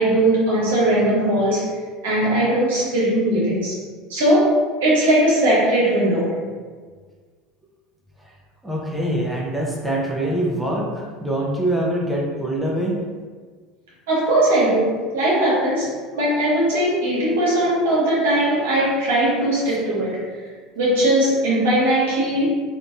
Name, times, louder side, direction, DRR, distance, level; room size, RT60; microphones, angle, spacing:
voice 1, 0.0-1.7 2.0-3.8 4.1-6.4 14.1-20.2 20.8-22.5, right 1 dB, 85° right, -6 dB, 1.3 m, -19 dB
voice 2, 8.6-13.0 19.6-19.8, right 1 dB, 5° right, -4 dB, 0.7 m, -24 dB
3.6 x 2.6 x 2.5 m, 1.5 s
hypercardioid pair, 90°, 0 cm